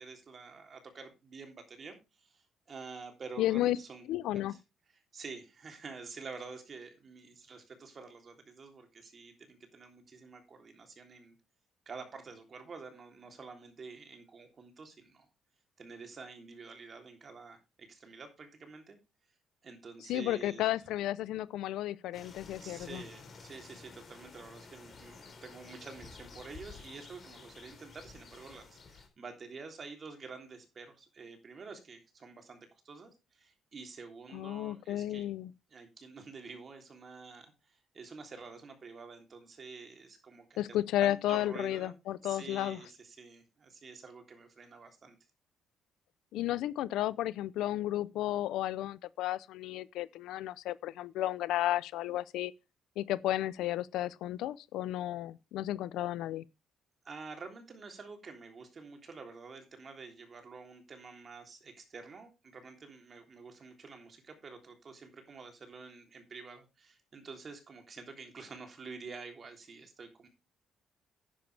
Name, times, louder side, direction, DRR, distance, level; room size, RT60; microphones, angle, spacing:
voice 1, 0.0-4.0 4.5-4.6 5.1-11.3 11.8-15.3 15.8-19.0 19.6-20.6 22.6-35.3 35.7-40.6 41.0-41.9 42.2-45.2 57.0-70.3, right 4 dB, 35° right, 3.3 m, -48 dB
voice 2, 3.4-3.8 4.1-4.5 20.1-23.0 34.3-35.5 40.6-42.8 46.3-52.5 53.0-56.4, left 14 dB, 85° left, 0.6 m, -33 dB
sound 1, 22.1-29.1, left 4 dB, 40° left, 3.8 m, -52 dB
10.5 x 10.5 x 3.4 m
cardioid pair, 130°, 0 cm